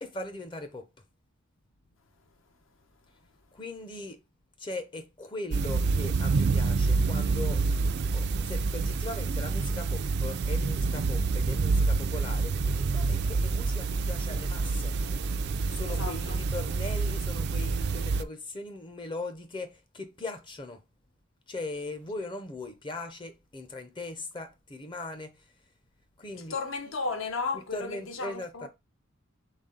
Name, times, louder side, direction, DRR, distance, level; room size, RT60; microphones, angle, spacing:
voice 1, 0.0-0.9 3.5-4.2 4.6-7.6 8.1-14.9 15.7-20.8 21.5-25.4 26.2-26.6 27.5-28.7, left 2 dB, 25° left, 0.5 m, -39 dB
sound 1, 5.5-18.2, right 4 dB, 50° right, 0.4 m, -27 dB
voice 2, 15.9-16.4 26.3-28.7, left 4 dB, 65° left, 0.8 m, -34 dB
4.1 x 3.5 x 3.8 m
head